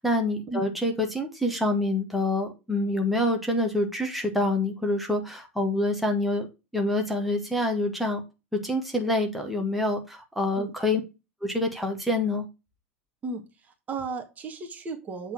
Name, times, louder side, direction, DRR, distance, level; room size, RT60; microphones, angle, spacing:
voice 1, 0.0-6.5 6.7-8.2 8.5-11.0 11.4-12.4, left 1 dB, ahead, 1.5 m, -26 dB
voice 2, 13.2-15.3, right 3 dB, 25° right, 1.6 m, -35 dB
8.0 x 3.6 x 6.1 m
figure-of-eight pair, 90°, 7 cm